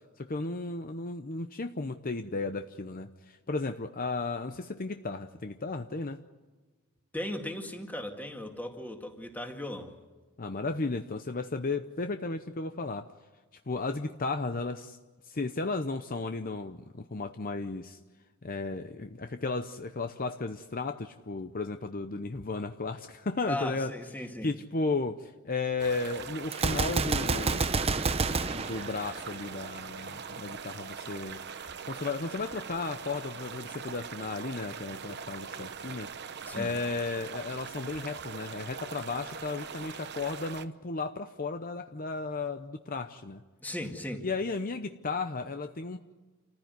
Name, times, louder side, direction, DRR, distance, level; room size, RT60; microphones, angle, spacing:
voice 1, 0.2-6.2 10.4-13.1 13.7-15.0 15.2-18.0 18.4-23.9 24.4-27.6 28.5-31.4 31.9-36.1 36.5-43.4 44.2-46.0, left 3 dB, 40° left, 7 dB, 0.8 m, -34 dB
voice 2, 7.1-9.9 23.5-24.5 36.5-36.7 43.6-44.3, left 1 dB, 10° left, 3 dB, 2.2 m, -37 dB
sound 1, 25.8-40.7, right 6 dB, 50° right, 0.9 m, -42 dB
Gunshot gunfire, 26.5-29.6, right 4 dB, 30° right, 0.7 m, -29 dB
28.5 x 15.0 x 9.6 m, 1.3 s
head